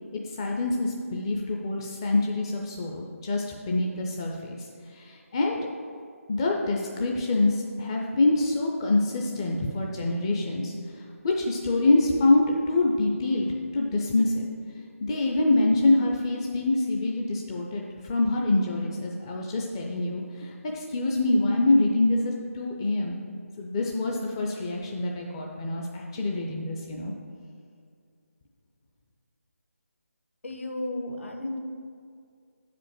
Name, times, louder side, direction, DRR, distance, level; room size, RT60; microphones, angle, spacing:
voice 1, 0.4-4.6 4.9-5.6 6.3-14.5 15.0-23.2 23.6-27.1, left 2 dB, 20° left, 0 dB, 0.4 m, -25 dB
voice 2, 30.4-31.6, left 1 dB, 60° left, 3 dB, 1.1 m, -33 dB
7.9 x 5.0 x 7.2 m, 2.3 s
figure-of-eight pair, 155°, 8 cm